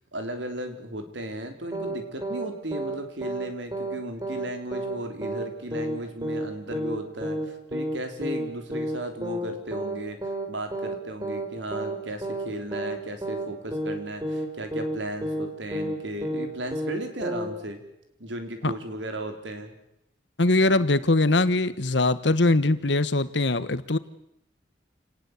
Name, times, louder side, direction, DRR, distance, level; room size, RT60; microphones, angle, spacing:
voice 1, 0.1-10.2 10.5-17.8 18.2-19.7, right 1 dB, 85° right, 6 dB, 4.2 m, -35 dB
sound 1, 1.7-2.0 2.2-2.5 2.7-3.0 3.2-3.5 3.7-4.0 4.2-4.5 4.7-5.0 5.2-5.5 5.7-6.0 6.2-6.5 6.7-7.0 7.2-7.5 7.7-8.0 8.2-8.5 8.7-9.0 9.2-9.5 9.7-10.0 10.2-10.5 10.7-11.0 11.2-11.5 11.7-12.0 12.2-12.5 12.7-13.0 13.2-13.5 13.7-14.0 14.2-14.5 14.7-15.0 15.2-15.5 15.7-16.5 16.7-17.0 17.2-17.5, right 1 dB, 20° right, 3.9 m, -30 dB
voice 2, 20.4-24.0, left 2 dB, 80° left, 15 dB, 1.3 m, -22 dB
28.0 x 19.0 x 8.4 m, 0.83 s
head